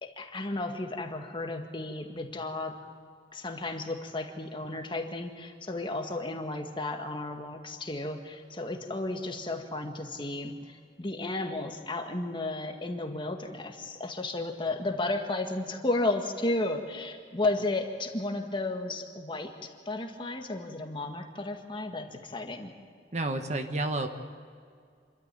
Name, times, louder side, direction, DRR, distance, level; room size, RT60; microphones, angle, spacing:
voice 1, 0.0-2.8 3.3-22.7, left 2 dB, 25° left, 4 dB, 1.8 m, -33 dB
voice 2, 23.1-24.1, right 2 dB, 40° right, 6 dB, 1.4 m, -30 dB
27.5 x 13.0 x 9.2 m, 2.1 s
head